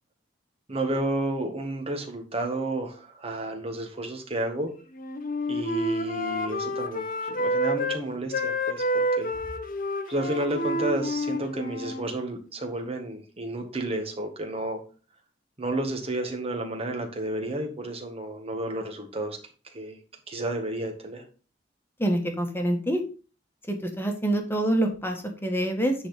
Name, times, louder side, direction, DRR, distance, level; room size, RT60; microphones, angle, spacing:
voice 1, 0.7-4.7 5.5-9.3 10.1-14.8 15.6-19.4 19.7-20.0 20.3-21.2, right 1 dB, 35° right, 4 dB, 1.7 m, -31 dB
Wind instrument woodwind instrument, 4.9-8.0 8.3-12.1, equal, 50° left, 1.0 m, -29 dB
voice 2, 22.0-23.0 23.7-25.9, right 1 dB, 15° left, 4 dB, 1.5 m, -26 dB
9.8 x 4.1 x 5.1 m, 0.36 s
head